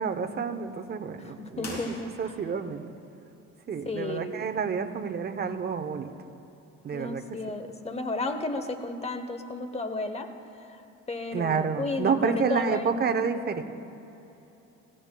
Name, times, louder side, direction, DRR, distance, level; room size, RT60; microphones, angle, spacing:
voice 1, 0.0-1.8 2.2-2.8 3.7-6.1 6.8-7.2 11.3-13.6, right 6 dB, 30° right, 8 dB, 0.7 m, -29 dB
voice 2, 1.2-2.3 3.8-4.3 6.9-10.3 10.6-10.8 11.1-12.9, left 3 dB, 20° left, 8 dB, 0.9 m, -33 dB
sound 1, 1.6-2.6, left 2 dB, 55° left, 2.9 m, -42 dB
17.5 x 16.5 x 2.3 m, 3.0 s
cardioid pair, 110°, 32 cm